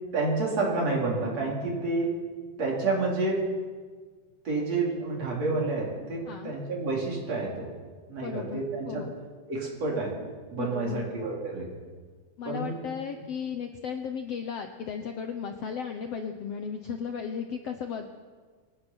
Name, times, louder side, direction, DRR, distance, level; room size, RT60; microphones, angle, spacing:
voice 1, 0.1-2.1 2.6-3.5 4.5-7.7 8.1-9.0 9.5-10.1 10.5-11.7 12.5-12.7, right 3 dB, 45° right, -3 dB, 5.4 m, -29 dB
voice 2, 8.2-9.1 10.5-11.1 12.4-18.0, left 6 dB, 90° left, 6 dB, 1.3 m, -35 dB
24.5 x 17.0 x 6.2 m, 1.5 s
omnidirectional pair, 4.3 m